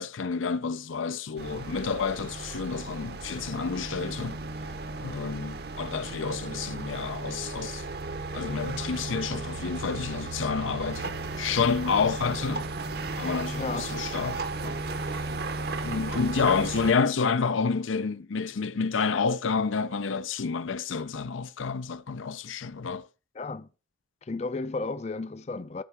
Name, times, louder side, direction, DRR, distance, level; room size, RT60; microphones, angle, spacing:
voice 1, 0.0-4.4 5.0-7.8 8.3-11.1 11.4-12.7 13.2-14.8 15.1-15.3 15.8-23.1, left 5 dB, 80° left, 0.5 m, -29 dB
sound 1, 1.4-16.9, right 3 dB, 50° right, 0.8 m, -35 dB
voice 2, 13.6-14.0 23.3-23.7 24.2-25.8, left 3 dB, 35° left, 0.4 m, -33 dB
13.0 x 4.6 x 6.0 m
head